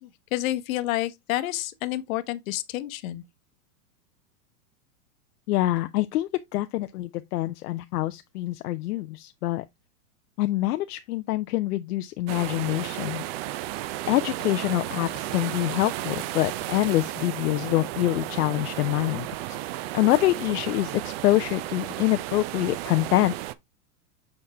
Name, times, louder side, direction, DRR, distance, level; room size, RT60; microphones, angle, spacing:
voice 1, 0.0-3.2, left 15 dB, 60° left, 0.9 m, -29 dB
voice 2, 5.5-9.6 10.4-13.2 14.1-19.6 19.9-23.3, left 16 dB, 80° left, 0.6 m, -25 dB
sound 1, 12.3-23.5, right 15 dB, 45° right, 0.5 m, -33 dB
6.9 x 4.2 x 3.2 m
hypercardioid pair, 130°, 46 cm